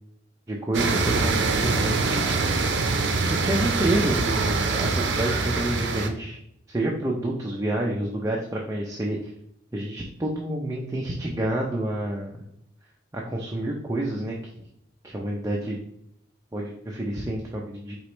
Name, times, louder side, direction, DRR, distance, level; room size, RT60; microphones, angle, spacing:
voice 1, 0.5-2.3 3.2-6.4 6.7-9.3 9.7-12.5 13.1-14.4 15.0-15.8 16.5-18.0, right 1 dB, 15° right, -2 dB, 0.5 m, -28 dB
sound 1, 0.7-6.1, right 3 dB, 70° right, 0.6 m, -24 dB
4.7 x 3.0 x 3.0 m, 0.74 s
head